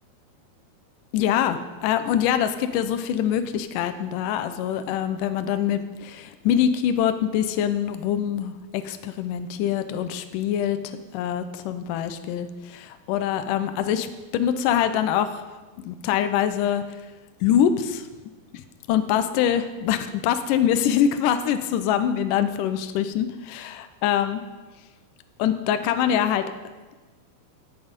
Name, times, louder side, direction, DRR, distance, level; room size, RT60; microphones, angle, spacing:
voice 1, 1.1-14.1 14.3-15.4 15.8-16.8 17.4-18.1 18.9-24.4 25.4-26.5, left 9 dB, 80° left, 9 dB, 1.9 m, -24 dB
17.0 x 7.6 x 5.2 m, 1.3 s
omnidirectional pair, 4.7 m